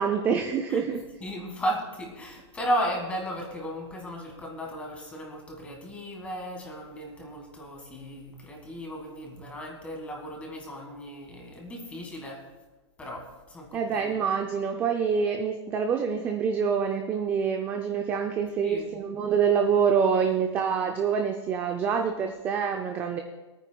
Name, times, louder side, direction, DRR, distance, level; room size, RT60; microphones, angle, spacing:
voice 1, 0.0-1.0 13.7-23.2, right 6 dB, 15° right, 4 dB, 0.4 m, -26 dB
voice 2, 1.2-12.4 13.0-14.1 18.6-18.9, equal, 10° left, 1 dB, 1.5 m, -35 dB
24.0 x 9.2 x 2.2 m, 1.2 s
supercardioid pair, 170°, 15 cm